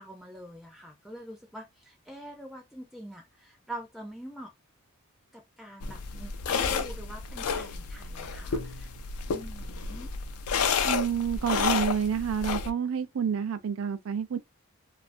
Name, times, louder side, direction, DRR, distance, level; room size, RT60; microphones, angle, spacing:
voice 1, 0.0-4.5 5.3-8.9 9.3-10.1, right 1 dB, ahead, 0.3 m, -44 dB
sound 1, 5.8-12.7, left 6 dB, 85° left, 0.4 m, -31 dB
voice 2, 10.8-14.4, right 7 dB, 70° right, 0.4 m, -29 dB
2.5 x 2.4 x 2.4 m
head